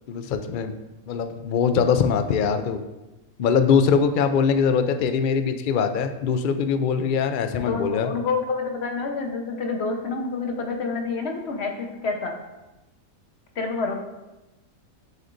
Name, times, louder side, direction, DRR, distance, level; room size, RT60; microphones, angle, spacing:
voice 1, 0.1-0.7 1.1-2.8 3.4-8.1, left 6 dB, 80° left, 8 dB, 0.4 m, -22 dB
voice 2, 7.7-12.3 13.6-13.9, left 4 dB, 50° left, 2 dB, 1.2 m, -28 dB
7.8 x 7.7 x 2.6 m, 1.0 s
omnidirectional pair, 1.5 m